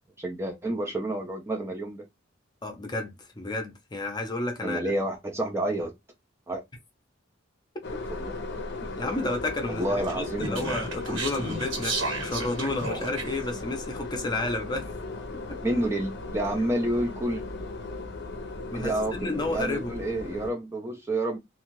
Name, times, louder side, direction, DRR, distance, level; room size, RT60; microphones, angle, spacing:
voice 1, 0.2-2.1 4.6-5.9 6.5-6.6 8.1-8.4 9.7-10.7 15.6-17.4 18.7-21.4, right 1 dB, 15° right, 0.5 m, -29 dB
voice 2, 2.6-4.9 8.8-14.9 18.7-20.0, left 2 dB, 20° left, 0.7 m, -31 dB
sound 1, 7.8-20.5, left 3 dB, 55° left, 0.6 m, -37 dB
Speech, 10.0-13.5, right 2 dB, 85° right, 1.3 m, -33 dB
2.5 x 2.4 x 3.0 m
head